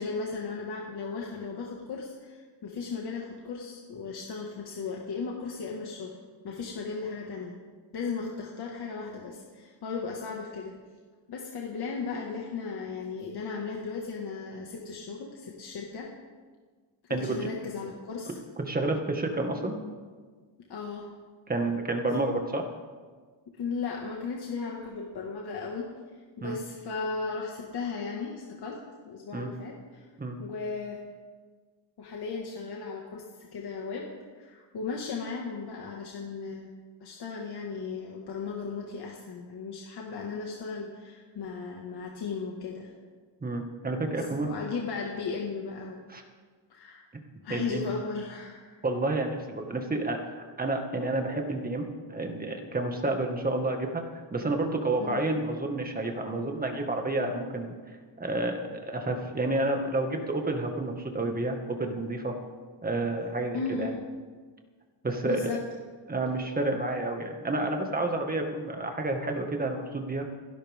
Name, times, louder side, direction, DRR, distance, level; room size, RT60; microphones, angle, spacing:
voice 1, 0.0-6.2 6.4-7.5 7.9-10.7 11.3-16.1 17.0-18.4 20.7-21.1 23.6-28.8 29.1-30.1 30.4-31.0 32.0-33.2 33.5-36.7 37.0-42.9 44.1-46.0 46.7-47.1 47.4-48.8 55.0-55.2 63.5-64.0 65.2-65.6, left 4 dB, 60° left, -1 dB, 2.0 m, -36 dB
voice 2, 17.1-17.5 18.7-19.8 21.5-22.6 26.4-26.6 29.3-29.5 30.2-30.4 43.4-44.5 46.1-46.2 47.5-47.9 48.8-57.8 58.2-62.4 62.8-63.9 65.0-65.6 66.1-70.2, right 2 dB, 20° right, 3 dB, 1.8 m, -30 dB
29.0 x 11.5 x 3.7 m, 1.5 s
cardioid pair, 145°, 44 cm